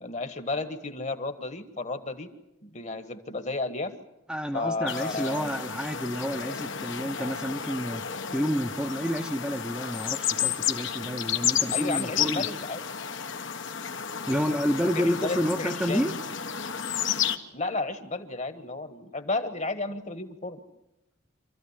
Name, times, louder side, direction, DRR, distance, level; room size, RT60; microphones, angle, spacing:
voice 1, 0.0-2.3 2.6-3.9 4.5-5.5 11.7-12.8 14.9-16.1 17.5-20.6, left 3 dB, 35° left, 10 dB, 1.5 m, -32 dB
voice 2, 4.3-8.0 8.3-12.5 14.2-16.1, equal, 5° right, 3 dB, 0.8 m, -29 dB
sound 1, 4.9-17.4, left 8 dB, 60° left, 1.3 m, -31 dB
27.0 x 14.5 x 9.7 m, 0.90 s
head